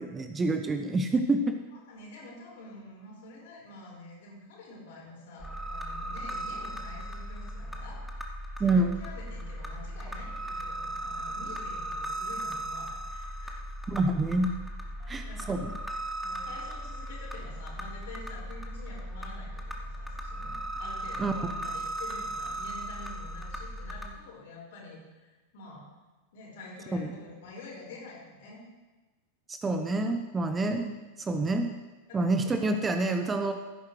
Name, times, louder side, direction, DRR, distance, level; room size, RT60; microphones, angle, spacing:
voice 1, 0.0-1.6 8.6-9.0 13.9-14.5 15.1-15.7 21.2-21.3 26.9-27.1 29.5-31.7 32.1-33.5, right 2 dB, 15° right, 7 dB, 0.8 m, -27 dB
voice 2, 1.9-13.6 15.0-15.5 16.2-25.9 26.3-28.6 32.1-32.9, left 2 dB, 55° left, -3 dB, 4.1 m, -47 dB
sound 1, 5.4-24.1, right 1 dB, ahead, 1.2 m, -37 dB
15.5 x 9.4 x 3.2 m, 1.2 s
figure-of-eight pair, 90°, 0 cm